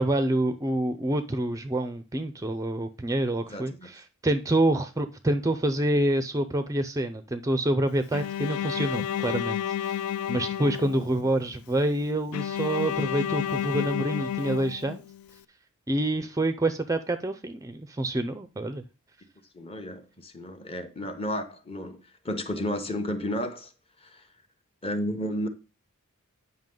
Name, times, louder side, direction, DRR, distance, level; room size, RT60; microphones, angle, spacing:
voice 1, 0.0-10.0 10.3-15.0 15.9-18.8, right 1 dB, 15° right, 0.4 m, -27 dB
voice 2, 3.5-3.9 19.5-23.7 24.1-24.2 24.8-25.5, left 1 dB, 25° left, 0.9 m, -32 dB
Bowed string instrument, 8.1-11.3 12.3-15.3, left 10 dB, 75° left, 0.3 m, -31 dB
9.0 x 5.6 x 3.8 m
head